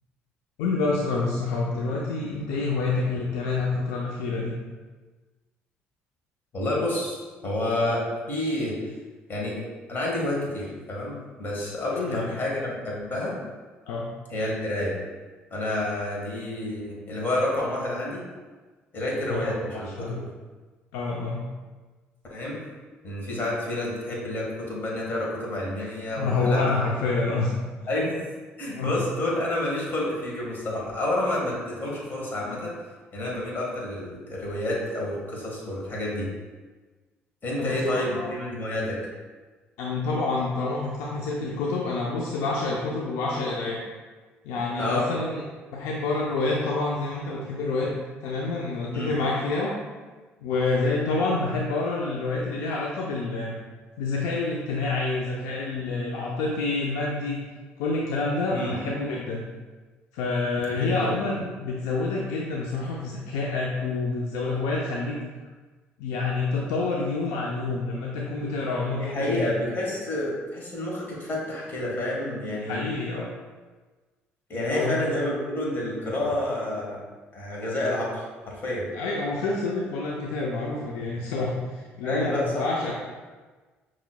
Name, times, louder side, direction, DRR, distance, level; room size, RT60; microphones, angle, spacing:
voice 1, 0.6-4.6 11.9-12.4 13.9-14.1 19.3-20.3 20.9-21.5 26.2-27.5 28.1-28.2 28.7-28.9 37.6-38.3 39.8-43.8 44.4-45.4 45.7-47.9 48.2-49.7 50.4-53.6 54.0-57.4 57.8-59.5 60.1-65.2 66.0-69.6 72.7-73.3 74.6-75.2 78.9-82.9, left 3 dB, 85° left, -2 dB, 0.4 m, -28 dB
voice 2, 6.5-8.7 9.3-9.6 9.9-13.3 14.3-14.9 15.5-18.2 18.9-19.9 22.3-22.6 23.0-26.6 27.9-28.1 28.6-32.7 33.1-36.3 37.4-39.0 44.8-45.1 48.9-49.1 58.5-58.8 60.8-61.1 69.0-72.8 74.5-77.0 77.3-78.9 82.0-82.9, left 1 dB, 45° left, -3 dB, 1.5 m, -29 dB
5.7 x 3.0 x 2.2 m, 1.3 s
supercardioid pair, 75°, 5 cm